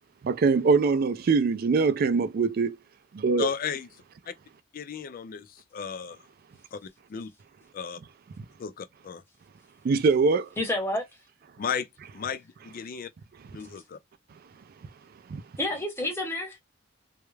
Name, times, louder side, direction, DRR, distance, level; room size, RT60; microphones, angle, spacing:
voice 1, 0.2-2.8 3.1-3.5 9.8-10.5 15.3-15.4, right 4 dB, 50° right, 0.3 m, -23 dB
voice 2, 3.4-3.9 4.3-4.4 4.7-6.2 6.7-7.3 7.7-8.0 8.6-9.2 11.6-11.9 12.1-13.1 13.5-14.0, left 7 dB, 45° left, 0.4 m, -34 dB
voice 3, 10.6-11.0 15.6-16.6, left 1 dB, 10° left, 0.8 m, -29 dB
2.3 x 2.1 x 3.1 m
head